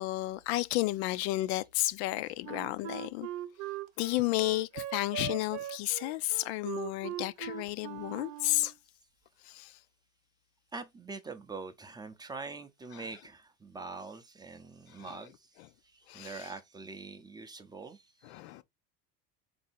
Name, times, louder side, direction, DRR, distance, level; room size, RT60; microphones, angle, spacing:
voice 1, 0.0-3.3 4.0-8.7 9.4-9.8 12.9-13.1 15.0-15.2 16.1-16.5 18.2-18.6, left 17 dB, 90° left, 0.5 m, -32 dB
Wind instrument woodwind instrument, 2.4-8.7, right 12 dB, 65° right, 0.7 m, -40 dB
voice 2, 10.7-15.4 16.1-18.0, right 4 dB, 15° right, 0.5 m, -43 dB
3.8 x 2.6 x 4.1 m
cardioid pair, 125°, 31 cm